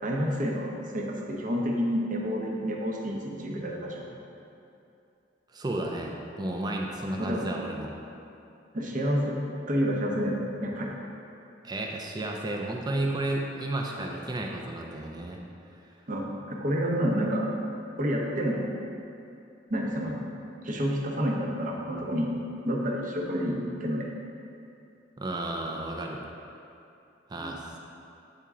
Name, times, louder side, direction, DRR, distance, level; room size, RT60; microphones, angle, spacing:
voice 1, 0.0-4.1 7.2-7.5 8.7-9.4 9.7-11.0 16.1-17.5 18.0-18.7 19.7-20.2 20.6-22.3 22.6-24.1 27.4-27.6, equal, 45° right, -1 dB, 0.8 m, -29 dB
voice 2, 5.5-7.9 11.6-15.4 25.2-26.2 27.3-27.8, right 1 dB, 20° right, 0 dB, 0.5 m, -32 dB
8.2 x 4.4 x 3.6 m, 2.7 s
head